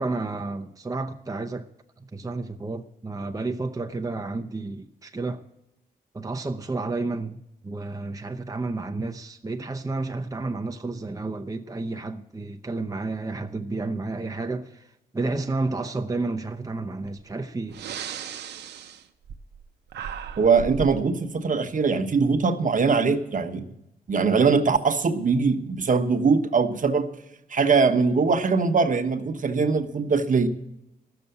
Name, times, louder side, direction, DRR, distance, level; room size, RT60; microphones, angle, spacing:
voice 1, 0.0-1.7 2.0-5.4 6.1-17.8, right 3 dB, 20° right, 0.8 m, -31 dB
Breathing, 17.0-17.2 17.7-19.6 19.9-21.0, right 7 dB, 90° right, 0.7 m, -36 dB
voice 2, 20.4-23.7 24.1-27.1 27.5-30.5, right 4 dB, 50° right, 1.1 m, -22 dB
14.0 x 7.0 x 7.8 m
cardioid pair, 65°, 17 cm